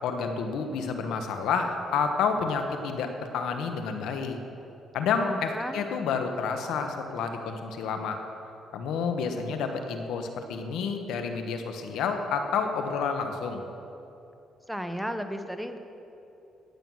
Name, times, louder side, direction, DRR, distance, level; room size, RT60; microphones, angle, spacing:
voice 1, 0.0-4.4 4.9-8.2 8.7-13.6, left 5 dB, 85° left, 5 dB, 1.2 m, -29 dB
voice 2, 5.2-5.8 14.7-15.8, equal, 5° right, 7 dB, 1.0 m, -34 dB
14.5 x 9.1 x 6.3 m, 2.8 s
cardioid pair, 90°, 0 cm